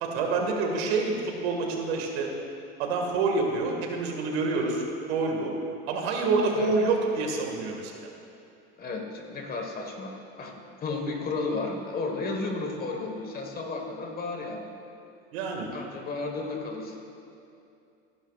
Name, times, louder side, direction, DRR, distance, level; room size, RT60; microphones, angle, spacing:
voice 1, 0.0-2.3 2.8-4.8 5.1-5.5 5.9-7.9 15.3-15.7, right 3 dB, 75° right, 1 dB, 2.0 m, -27 dB
voice 2, 8.8-10.5 10.8-14.7 15.7-17.0, left 3 dB, 30° left, 2 dB, 1.5 m, -33 dB
17.5 x 11.0 x 2.5 m, 2.6 s
supercardioid pair, 120°, 32 cm